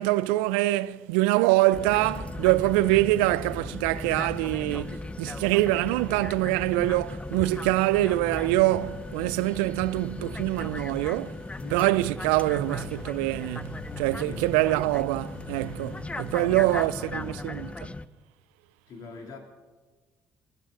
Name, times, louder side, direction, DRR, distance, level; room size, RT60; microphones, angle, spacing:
voice 1, 0.0-11.4 11.7-17.9, right 18 dB, 75° right, 0.4 m, -25 dB
sound 1, 1.7-18.0, left 2 dB, 15° left, 0.6 m, -37 dB
sound 2, 2.1-7.7 7.9-13.4 13.7-15.6, left 1 dB, 40° left, 5.0 m, -46 dB
voice 2, 11.5-11.9 14.3-14.5 16.3-17.4 18.9-19.4, left 3 dB, 60° left, 2.8 m, -43 dB
sound 3, 12.6-17.7, left 5 dB, 85° left, 4.9 m, -47 dB
22.0 x 12.0 x 3.8 m
hypercardioid pair, 50°, 7 cm